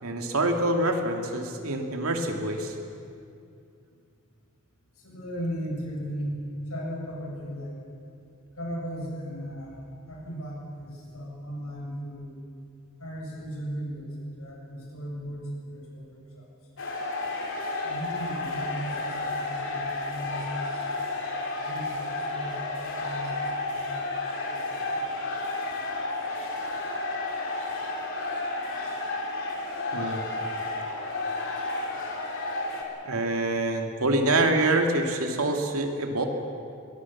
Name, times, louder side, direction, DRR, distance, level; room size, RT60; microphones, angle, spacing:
voice 1, 0.0-2.7 29.9-30.2 33.0-36.3, right 2 dB, 80° right, 3 dB, 2.6 m, -26 dB
voice 2, 5.0-6.4 6.7-7.8 8.6-9.8 10.1-12.4 13.0-16.5 17.8-20.9 21.2-25.2, equal, 90° left, -2 dB, 7.0 m, -37 dB
sound 1, 16.8-32.8, left 2 dB, 65° left, 3.7 m, -32 dB
24.0 x 19.5 x 7.3 m, 2.5 s
head